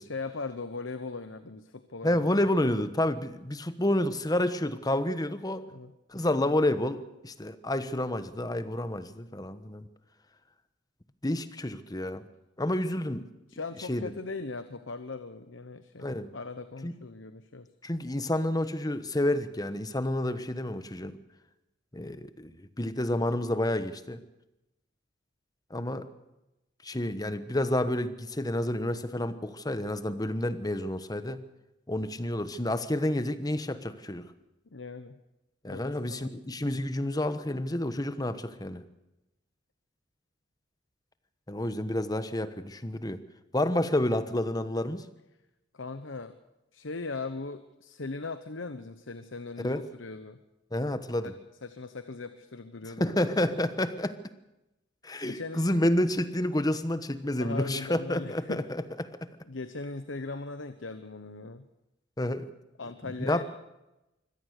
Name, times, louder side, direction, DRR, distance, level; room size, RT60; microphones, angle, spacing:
voice 1, 0.0-2.2 5.7-5.9 13.5-17.7 34.7-35.2 35.7-36.3 45.7-46.3 46.7-50.4 51.2-51.3 51.6-53.2 55.2-55.6 57.4-58.6 59.5-61.6 62.8-63.4, left 3 dB, 90° left, 10 dB, 1.1 m, -39 dB
voice 2, 2.0-5.6 6.1-9.8 11.2-12.2 12.6-13.2 13.9-14.1 16.0-16.3 16.8-16.9 17.8-21.2 21.9-24.2 25.7-26.1 26.8-31.4 31.9-34.3 35.6-38.8 41.5-43.2 43.5-45.0 49.6-49.8 50.7-51.3 53.0-54.1 55.0-59.1 62.2-62.5 63.0-63.4, left 1 dB, 20° left, 12 dB, 1.2 m, -29 dB
24.5 x 17.5 x 6.7 m, 0.94 s
head